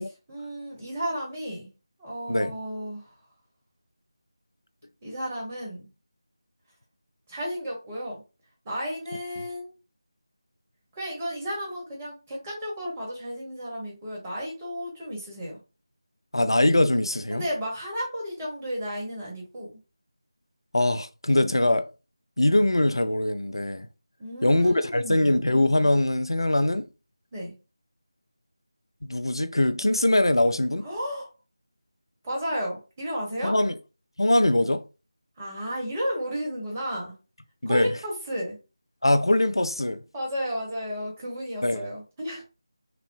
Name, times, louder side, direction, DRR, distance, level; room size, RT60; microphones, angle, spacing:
voice 1, 0.3-1.7 2.0-3.2 5.0-5.9 7.3-8.2 8.6-9.7 10.9-15.6 17.3-19.7 24.2-25.4 27.3-27.5 30.8-31.3 32.2-33.6 35.4-37.1 37.6-38.6 40.1-42.4, equal, 15° right, 1.3 m, -33 dB
voice 2, 16.3-17.4 20.7-21.9 22.4-23.9 24.4-26.9 29.0-30.8 33.4-33.7 34.2-34.8 37.6-37.9 39.0-40.0 41.6-41.9, left 1 dB, 70° left, 0.7 m, -22 dB
5.9 x 2.1 x 3.3 m
figure-of-eight pair, 165°, 3 cm